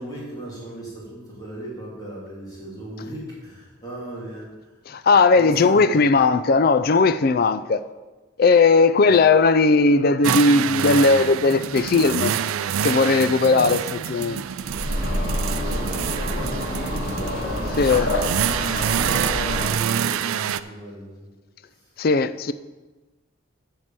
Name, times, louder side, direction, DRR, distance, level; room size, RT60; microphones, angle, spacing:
voice 1, 0.0-4.7 5.3-6.0 9.0-9.1 13.4-13.6 15.5-18.0 18.8-21.3 21.7-21.8, right 1 dB, 20° left, 3.1 m, -37 dB
voice 2, 4.9-7.8 8.4-12.3 12.8-14.4 17.8-18.1 22.0-22.5, left 4 dB, 45° left, 0.4 m, -17 dB
sound 1, 10.2-20.6, right 9 dB, 80° right, 0.4 m, -26 dB
sound 2, 14.6-19.7, left 1 dB, 60° left, 2.0 m, -27 dB
9.6 x 4.8 x 7.5 m
head